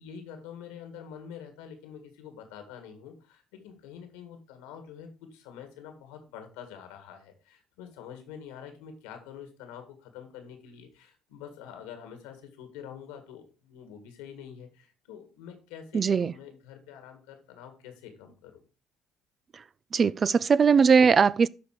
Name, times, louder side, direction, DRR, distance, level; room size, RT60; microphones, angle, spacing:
voice 1, 0.0-18.6, left 8 dB, 85° left, 1.8 m, -46 dB
voice 2, 15.9-16.3 19.9-21.5, right 6 dB, 40° right, 0.4 m, -20 dB
11.5 x 4.0 x 4.8 m
hypercardioid pair, 60°, 0 cm